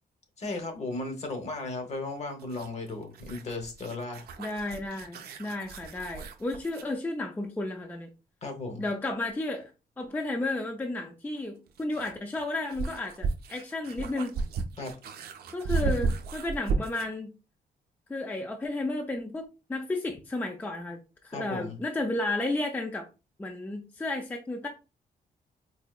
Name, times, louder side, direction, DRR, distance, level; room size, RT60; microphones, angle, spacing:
voice 1, 0.4-4.3 8.4-8.8 14.8-14.9 21.3-21.8, left 2 dB, 45° left, 0.8 m, -35 dB
sound 1, 2.4-6.9 9.3-9.4 11.4-17.2, right 4 dB, 85° right, 0.5 m, -34 dB
voice 2, 4.4-8.1 8.8-9.7 10.0-14.4 15.5-17.3 18.1-21.0 21.2-23.1 23.4-24.7, left 2 dB, 10° left, 0.3 m, -33 dB
4.3 x 2.7 x 2.2 m
wide cardioid pair, 175°, 16 cm